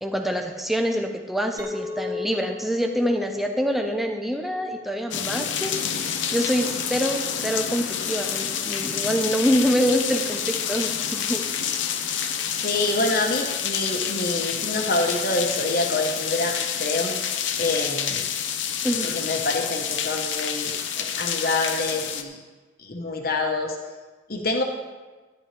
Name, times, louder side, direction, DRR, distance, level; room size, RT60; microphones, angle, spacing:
voice 1, 0.0-11.4 18.8-19.2, equal, ahead, 3 dB, 0.6 m, -26 dB
Chink clink, 1.6-6.1, left 4 dB, 15° right, 1.1 m, -37 dB
sound 1, 5.1-22.2, left 8 dB, 70° left, 0.8 m, -28 dB
voice 2, 12.6-17.1 17.6-18.2 19.0-22.4 22.8-23.8 24.3-24.6, left 2 dB, 50° left, 2 dB, 1.3 m, -26 dB
13.5 x 10.5 x 3.4 m, 1.3 s
head